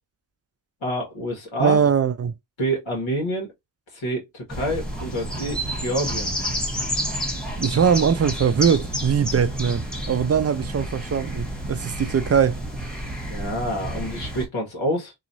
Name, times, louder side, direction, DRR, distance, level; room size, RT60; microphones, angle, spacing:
voice 1, 0.8-1.8 2.6-3.5 3.9-6.3 13.3-15.1, equal, 70° left, 1.4 m, -27 dB
voice 2, 1.6-2.3 7.6-12.6, right 7 dB, 35° right, 0.4 m, -21 dB
sound 1, 4.5-14.4, equal, ahead, 1.4 m, -30 dB
3.0 x 2.4 x 2.6 m
cardioid pair, 55°, 48 cm